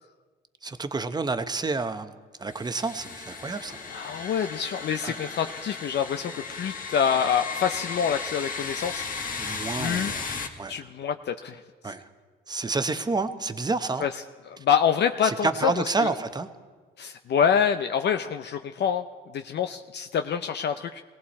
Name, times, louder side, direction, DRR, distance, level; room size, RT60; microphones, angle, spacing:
voice 1, 0.6-2.1 2.4-3.8 5.0-5.2 9.4-10.2 10.6-10.9 11.8-12.0 12.5-14.0 15.2-16.5, right 3 dB, 20° right, 10 dB, 0.9 m, -29 dB
sound 1, 2.5-10.5, left 5 dB, 45° left, 1.7 m, -35 dB
voice 2, 3.9-9.0 9.4-10.1 10.7-11.9 14.0-15.7 16.0-16.1 17.0-19.1 19.3-21.0, left 7 dB, 60° left, 7 dB, 0.6 m, -26 dB
19.5 x 17.0 x 4.2 m, 1.4 s
cardioid pair, 90°, 20 cm